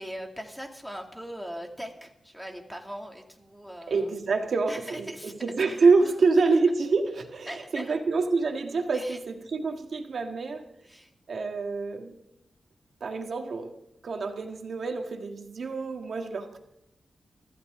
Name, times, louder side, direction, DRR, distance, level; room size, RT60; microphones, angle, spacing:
voice 1, 0.0-4.1 4.7-5.3 5.6-6.1 7.5-8.0 8.9-9.2 10.8-11.1 14.5-14.6, equal, ahead, 3 dB, 2.4 m, -40 dB
voice 2, 3.9-10.6 11.3-12.2 13.0-13.7 14.0-16.6, right 4 dB, 70° right, 4 dB, 1.7 m, -26 dB
25.0 x 14.0 x 3.7 m, 0.83 s
wide cardioid pair, 100°, 0 cm